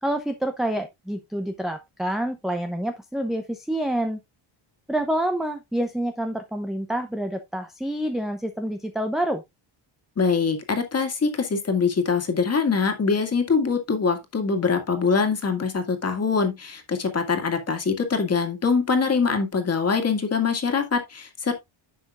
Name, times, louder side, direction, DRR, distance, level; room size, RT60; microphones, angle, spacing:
voice 1, 0.0-4.2 4.9-9.4, right 1 dB, ahead, 0.6 m, -27 dB
voice 2, 10.2-21.5, left 5 dB, 30° left, 2.0 m, -23 dB
10.5 x 6.8 x 2.4 m
cardioid pair, 155°, 49 cm